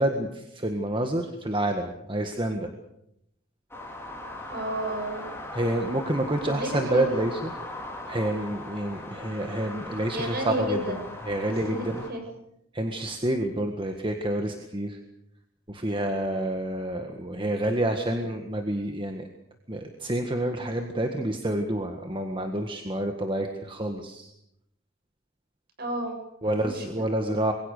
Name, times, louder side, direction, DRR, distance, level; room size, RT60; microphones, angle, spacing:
voice 1, 0.0-2.7 5.5-7.5 8.1-10.8 11.2-12.1 12.7-15.0 15.7-19.3 19.7-24.3 26.4-27.5, right 1 dB, 25° right, 5 dB, 1.7 m, -28 dB
sound 1, 3.7-12.1, left 2 dB, 10° left, 4.7 m, -39 dB
voice 2, 4.5-5.3 6.5-7.1 10.1-11.0 11.5-12.2 18.1-18.2 25.8-27.1, right 1 dB, 50° right, 4 dB, 7.5 m, -32 dB
26.5 x 22.0 x 6.7 m, 0.80 s
head